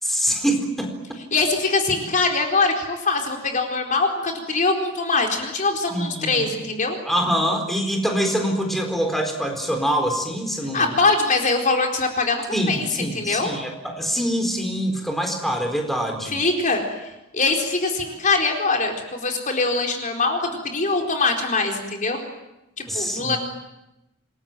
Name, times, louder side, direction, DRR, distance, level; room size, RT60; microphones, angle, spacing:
voice 1, 0.0-0.9 5.9-6.5 7.1-10.9 12.5-16.4 22.9-23.4, equal, ahead, 3 dB, 4.3 m, -24 dB
voice 2, 1.3-7.0 10.7-13.5 16.3-17.1 17.3-22.2 22.8-23.4, left 3 dB, 40° left, 2 dB, 4.3 m, -23 dB
28.0 x 21.5 x 9.2 m, 0.93 s
head